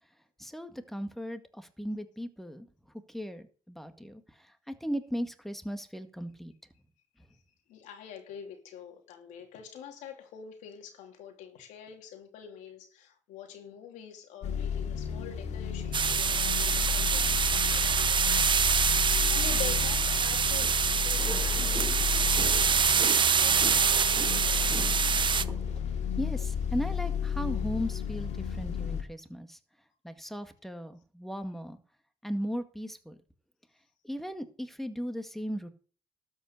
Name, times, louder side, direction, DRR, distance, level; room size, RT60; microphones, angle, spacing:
voice 1, 0.4-2.7 3.1-6.5 26.2-29.6 30.0-31.8 32.2-33.2 34.0-35.7, equal, ahead, 1.9 m, -37 dB
voice 2, 7.7-20.7 21.0-24.8, left 8 dB, 85° left, 2.8 m, -46 dB
sound 1, 14.4-29.0, left 7 dB, 70° left, 2.6 m, -32 dB
sound 2, 15.9-25.4, right 6 dB, 40° right, 0.8 m, -25 dB
sound 3, 20.5-25.8, right 3 dB, 25° right, 3.0 m, -43 dB
13.0 x 5.6 x 8.3 m
supercardioid pair, 70°, 12 cm